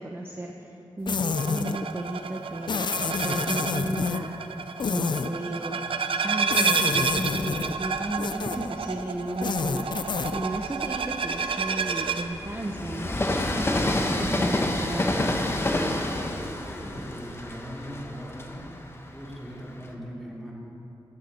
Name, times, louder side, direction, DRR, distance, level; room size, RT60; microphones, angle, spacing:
voice 1, 0.0-4.3 4.9-5.8 6.2-13.5 13.9-15.3, right 1 dB, 25° right, 0 dB, 0.8 m, -34 dB
sound 1, 1.1-1.8 2.7-4.3 4.8-5.3 6.5-7.7 8.2-8.7 9.3-10.4, left 5 dB, 55° left, 0.5 m, -28 dB
sound 2, 1.3-12.3, right 5 dB, 70° right, 0.6 m, -30 dB
Train, 7.0-8.7 9.3-19.9, left 1 dB, 25° left, 1.1 m, -30 dB
voice 2, 16.6-18.6 19.1-20.5, equal, ahead, -5 dB, 2.9 m, -39 dB
16.5 x 9.2 x 4.3 m, 3.0 s
wide cardioid pair, 85°, 10 cm